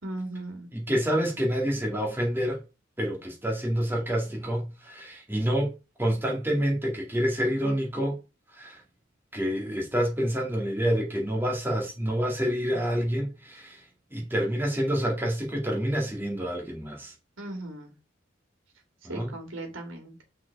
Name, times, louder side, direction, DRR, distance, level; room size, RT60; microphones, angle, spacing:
voice 1, 0.0-0.7 17.4-18.0 19.0-20.2, right 1 dB, 85° right, 2.1 m, -37 dB
voice 2, 0.7-2.6 3.0-5.7 6.0-8.2 8.5-8.8 9.3-13.8 14.1-17.1 19.0-19.3, equal, 10° right, 2.3 m, -28 dB
6.1 x 4.8 x 5.4 m
head